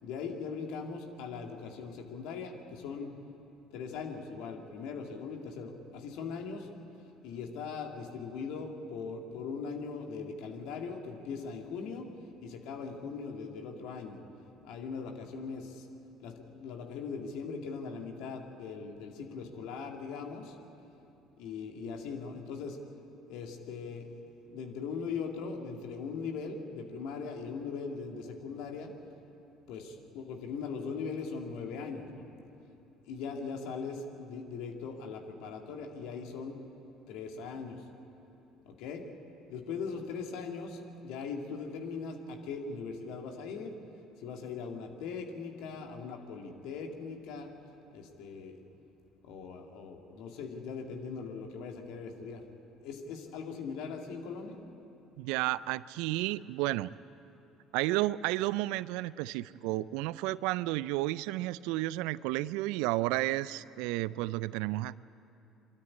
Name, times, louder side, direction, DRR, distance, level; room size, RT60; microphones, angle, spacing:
voice 1, 0.0-3.1 3.7-6.7 7.2-12.1 12.4-14.2 14.6-15.9 16.2-20.6 21.3-22.8 23.3-28.9 29.7-32.3 33.0-36.6 37.1-37.8 38.7-39.0 39.5-43.7 44.2-47.5 47.9-48.6 49.2-52.4 52.8-54.6, left 5 dB, 70° left, 3 dB, 2.3 m, -40 dB
voice 2, 55.2-56.9 57.7-65.0, right 17 dB, 75° right, 19 dB, 0.4 m, -32 dB
24.5 x 13.0 x 9.8 m, 2.9 s
hypercardioid pair, 65°, 0 cm